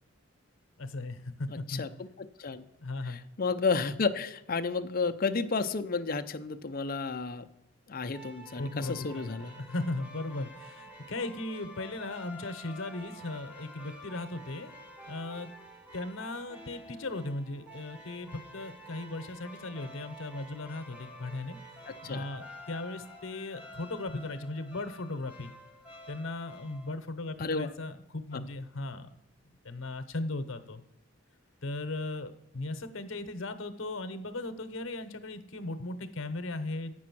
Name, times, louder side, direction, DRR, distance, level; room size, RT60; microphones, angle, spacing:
voice 1, 0.8-1.9 2.8-3.2 8.6-14.7 15.1-15.5 15.9-21.6 22.0-25.5 26.1-29.1 29.6-30.8 31.6-36.9, left 2 dB, 75° left, 10 dB, 0.9 m, -37 dB
voice 2, 1.5-1.9 2.2-2.6 3.0-7.5 7.9-9.6 21.9-22.2 27.4-27.7, left 4 dB, 45° left, 9 dB, 0.5 m, -32 dB
sound 1, 8.1-27.0, equal, 5° right, 1.2 m, -49 dB
8.4 x 6.2 x 6.1 m, 0.84 s
head